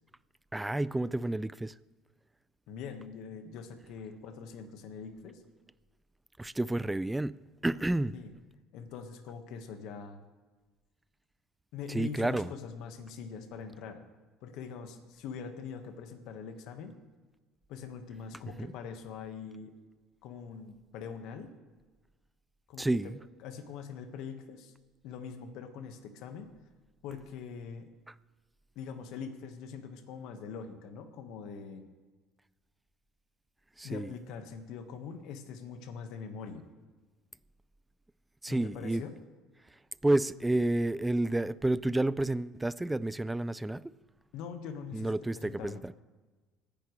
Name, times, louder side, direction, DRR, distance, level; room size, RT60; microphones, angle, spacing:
voice 1, 0.5-1.7 6.4-8.2 11.9-12.5 18.6-18.7 22.8-23.2 28.1-28.2 33.8-34.1 38.4-39.0 40.0-43.9 44.9-46.0, right 2 dB, 10° right, 0.4 m, -30 dB
voice 2, 2.7-5.4 8.1-8.3 8.7-10.2 11.7-14.0 14.4-17.0 17.7-19.7 20.2-21.5 22.7-23.1 23.4-24.7 25.0-26.5 27.0-27.9 28.7-31.8 33.8-36.7 38.5-39.2 44.3-45.8, left 6 dB, 70° left, 1.5 m, -43 dB
25.0 x 10.5 x 3.3 m
supercardioid pair, 90°, 0 cm